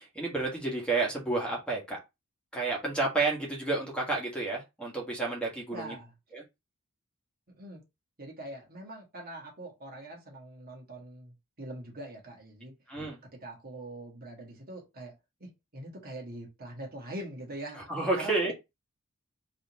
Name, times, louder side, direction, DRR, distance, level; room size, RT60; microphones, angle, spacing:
voice 1, 0.0-2.0 2.5-5.9 6.3-6.4 12.9-13.2 17.9-18.5, right 3 dB, 5° left, 1.5 m, -30 dB
voice 2, 5.7-6.1 7.5-7.8 8.2-12.7 13.4-15.1 15.4-17.9 18.2-18.5, right 1 dB, 45° right, 1.7 m, -43 dB
4.0 x 3.0 x 4.0 m
head